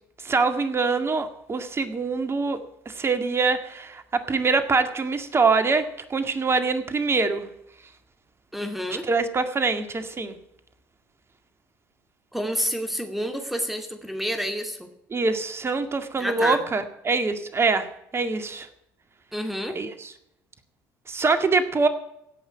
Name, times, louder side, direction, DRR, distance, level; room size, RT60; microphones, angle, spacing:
voice 1, 0.2-5.8 6.1-7.5 9.1-10.3 15.1-17.9 18.1-18.7 19.7-20.1 21.1-21.9, right 4 dB, 30° right, 9 dB, 2.0 m, -24 dB
voice 2, 8.5-9.1 12.3-14.9 16.2-16.6 19.3-19.8, equal, ahead, 6 dB, 2.5 m, -29 dB
16.5 x 5.8 x 9.7 m, 0.80 s
hypercardioid pair, 70°, 8 cm